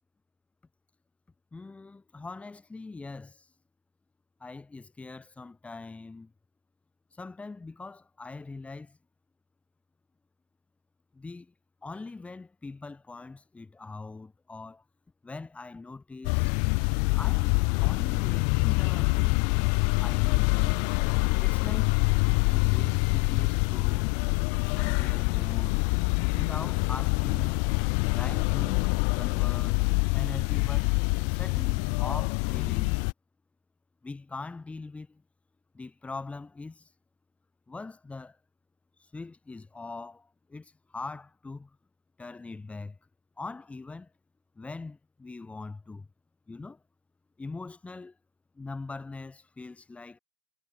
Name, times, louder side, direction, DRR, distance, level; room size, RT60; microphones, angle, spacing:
voice 1, 1.5-3.3 4.4-6.3 7.2-9.0 11.2-11.5 11.8-14.8 15.2-16.5 17.1-19.5 20.0-20.9 21.4-22.0 22.5-24.1 24.7-26.0 26.3-27.6 28.1-28.9 29.1-29.8 30.1-31.0 31.3-33.0 34.0-35.2 35.7-36.8 37.7-38.3 39.1-40.2 40.5-40.7 40.9-41.7 42.2-43.0 43.4-44.1 44.6-46.1 46.5-46.8 47.4-48.1 48.6-50.2, left 3 dB, 10° left, 7.5 m, -42 dB
sound 1, 16.2-33.1, left 40 dB or more, 40° left, 2.4 m, -25 dB
figure-of-eight pair, 100°, 14 cm